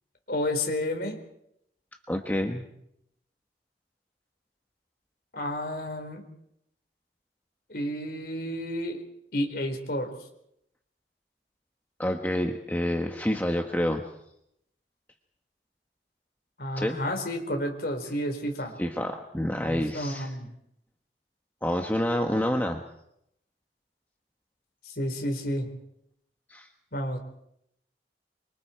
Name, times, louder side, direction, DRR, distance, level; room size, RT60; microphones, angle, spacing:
voice 1, 0.3-1.2 5.3-6.2 7.7-9.0 9.3-10.1 16.6-18.8 19.6-20.5 24.8-25.7 26.9-27.2, left 1 dB, 60° left, 3 dB, 4.3 m, -31 dB
voice 2, 2.1-2.7 12.0-14.0 16.8-17.0 18.8-20.3 21.6-22.8 26.5-26.7, equal, 10° left, 3 dB, 1.2 m, -28 dB
27.0 x 25.0 x 4.5 m, 0.77 s
head